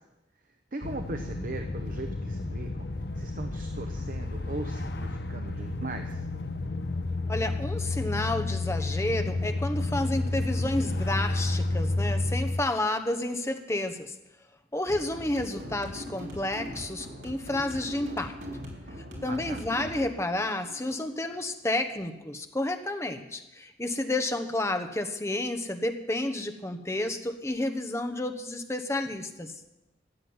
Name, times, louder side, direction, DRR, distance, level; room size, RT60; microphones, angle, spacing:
voice 1, 0.7-2.9 3.1-6.3 19.2-19.6, right 2 dB, 50° right, 6 dB, 0.9 m, -38 dB
sound 1, 0.8-12.6, left 2 dB, 65° left, 0.9 m, -31 dB
voice 2, 7.3-14.1 14.7-18.4 19.2-29.5, left 1 dB, 15° left, 6 dB, 1.0 m, -31 dB
sound 2, 14.9-21.8, equal, 75° right, 4.1 m, -41 dB
13.5 x 7.5 x 9.5 m, 0.93 s
head